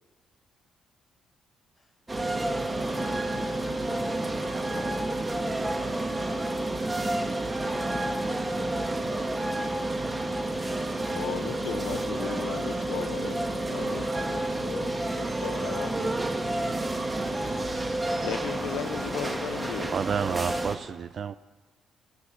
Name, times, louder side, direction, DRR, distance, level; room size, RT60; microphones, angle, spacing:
sound 1, 2.1-20.8, right 2 dB, 20° right, 1.7 m, -30 dB
voice 1, 2.4-6.6 10.4-11.2 13.9-14.0, left 1 dB, 5° left, -3 dB, 7.1 m, -53 dB
voice 2, 11.2-16.2 17.4-19.9, left 10 dB, 90° left, 10 dB, 0.7 m, -37 dB
voice 3, 19.8-21.3, right 7 dB, 50° right, 15 dB, 0.4 m, -30 dB
17.5 x 8.3 x 9.1 m, 1.3 s
cardioid pair, 90°, 0 cm